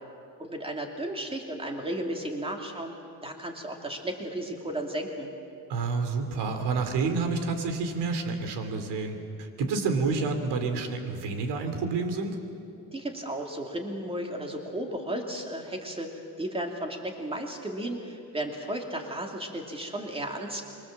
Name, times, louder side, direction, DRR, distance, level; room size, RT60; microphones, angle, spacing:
voice 1, 0.4-2.9 3.2-5.3 12.9-16.1 16.4-20.6, right 1 dB, 15° right, 2 dB, 2.7 m, -34 dB
voice 2, 5.7-12.4, right 4 dB, 80° right, 7 dB, 3.1 m, -29 dB
25.0 x 24.0 x 7.6 m, 2.6 s
cardioid pair, 155°, 40 cm